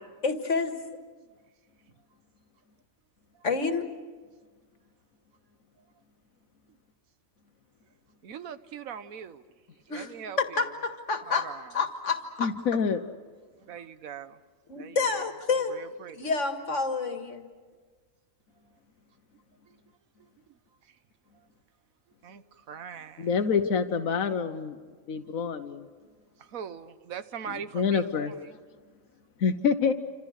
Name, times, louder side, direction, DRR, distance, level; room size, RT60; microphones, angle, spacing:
voice 1, 0.2-0.8 3.4-3.9 9.9-10.1 10.4-11.5 11.7-12.5 14.7-15.8 16.1-17.5, left 4 dB, 65° left, 6 dB, 2.1 m, -28 dB
voice 2, 8.2-9.4 9.9-10.8 11.3-11.8 13.6-14.4 14.7-15.3 15.7-16.3 19.7-19.8 20.2-21.0 22.2-23.3 26.4-28.6, right 7 dB, 85° right, 12 dB, 1.4 m, -42 dB
voice 3, 12.4-13.0 23.2-24.8 25.1-25.8 27.7-28.3 29.4-29.9, left 6 dB, 85° left, 7 dB, 1.4 m, -26 dB
28.5 x 26.5 x 6.5 m, 1.4 s
omnidirectional pair, 1.4 m